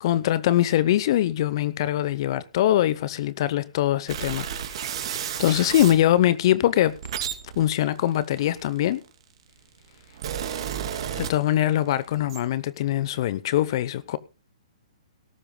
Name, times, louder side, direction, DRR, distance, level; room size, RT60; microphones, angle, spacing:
voice 1, 0.0-5.1 5.4-7.0 7.6-9.0 11.2-14.2, left 12 dB, 45° left, 0.8 m, -23 dB
sound 1, 4.1-6.0 6.7-9.1 9.8-11.8 12.1-12.4, right 9 dB, 55° right, 3.0 m, -32 dB
18.0 x 14.5 x 2.3 m
figure-of-eight pair, 125°, 3 cm